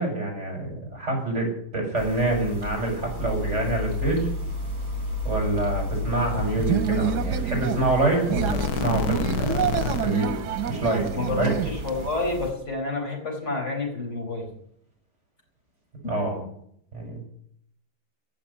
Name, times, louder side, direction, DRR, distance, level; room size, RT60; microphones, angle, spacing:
voice 1, 0.0-1.5 1.7-4.3 5.2-10.4 10.7-11.5 16.0-16.4 16.9-17.2, right 2 dB, 40° right, 2 dB, 6.3 m, -26 dB
sound 1, 1.9-12.5, right 1 dB, 60° right, 4.0 m, -36 dB
sound 2, 3.2-8.0 8.2-10.3, left 3 dB, 70° left, 1.2 m, -30 dB
sound 3, 6.1-12.1, right 10 dB, 85° right, 1.4 m, -29 dB
voice 2, 11.2-14.5 16.3-16.4, left 3 dB, 45° left, 0 dB, 4.9 m, -29 dB
17.0 x 7.2 x 10.0 m, 0.68 s
omnidirectional pair, 1.8 m